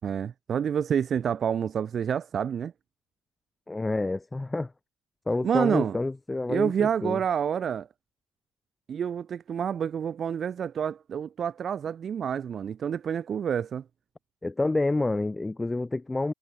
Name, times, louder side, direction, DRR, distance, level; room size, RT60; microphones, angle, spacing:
voice 1, 0.0-2.7 5.4-6.0 6.5-7.9 8.9-13.8, right 8 dB, 20° right, 4.5 m, -28 dB
voice 2, 3.7-4.7 5.3-7.2 14.4-16.3, left 2 dB, 5° left, 4.2 m, -28 dB
supercardioid pair, 170°, 0 cm